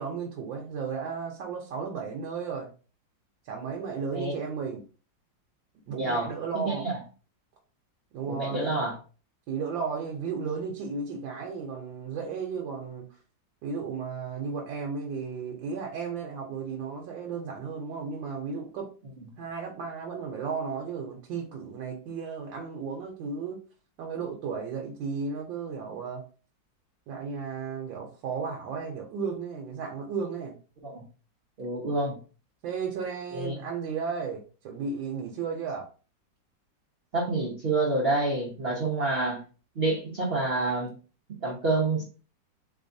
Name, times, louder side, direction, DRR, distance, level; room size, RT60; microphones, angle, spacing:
voice 1, 0.0-2.7 3.4-4.8 5.9-6.9 8.1-8.9 9.5-13.0 13.6-18.9 19.4-23.6 24.0-26.2 27.1-30.6 32.6-35.8, right 5 dB, 80° right, 1.5 m, -34 dB
voice 2, 5.9-6.3 6.7-7.0 8.3-9.0 30.8-31.0 31.6-32.2 33.3-33.6 37.1-39.4 39.8-40.9 41.4-42.0, right 2 dB, 50° right, 0.7 m, -28 dB
3.9 x 3.4 x 2.6 m
omnidirectional pair, 2.0 m